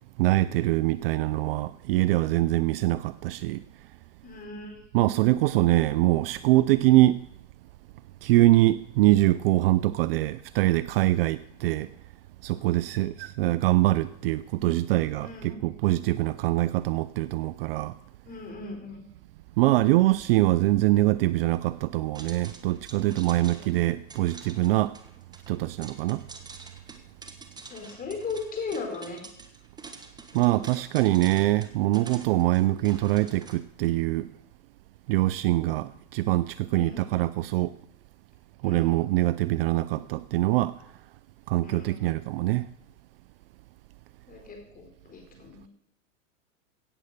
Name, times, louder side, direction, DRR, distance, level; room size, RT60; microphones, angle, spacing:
voice 1, 0.2-3.6 4.9-7.2 8.2-11.9 12.4-17.9 19.6-25.0 25.5-26.2 30.3-34.3 35.1-37.8 38.6-40.7 41.5-42.7, right 17 dB, 45° right, 0.4 m, -23 dB
voice 2, 4.2-4.8 12.6-13.1 15.2-15.6 18.2-19.1 23.4-23.5 27.7-29.2 30.5-30.7 32.3-32.4 36.7-37.1 38.6-39.0 41.6-42.0 44.3-45.7, left 4 dB, 20° left, 4.2 m, -38 dB
sound 1, 22.1-33.5, right 4 dB, 10° right, 1.2 m, -47 dB
16.5 x 7.8 x 6.7 m
hypercardioid pair, 130°, 41 cm